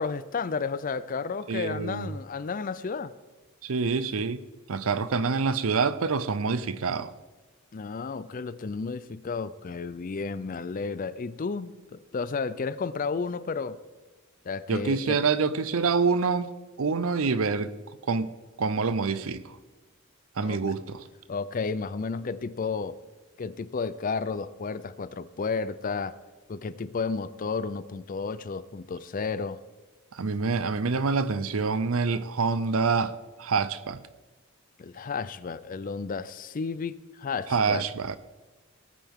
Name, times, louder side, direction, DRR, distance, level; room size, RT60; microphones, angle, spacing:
voice 1, 0.0-3.1 7.7-13.8 14.4-15.2 20.4-20.6 21.3-23.0 23.4-26.2 26.5-29.6 34.8-37.9, left 4 dB, 40° left, 0.4 m, -32 dB
voice 2, 1.5-2.2 3.6-4.4 4.7-7.1 14.7-16.5 16.8-17.7 18.1-18.3 18.6-19.4 20.4-21.0 30.1-33.1 33.4-34.0 37.5-38.2, right 4 dB, 70° right, 0.6 m, -26 dB
18.5 x 9.3 x 3.6 m
head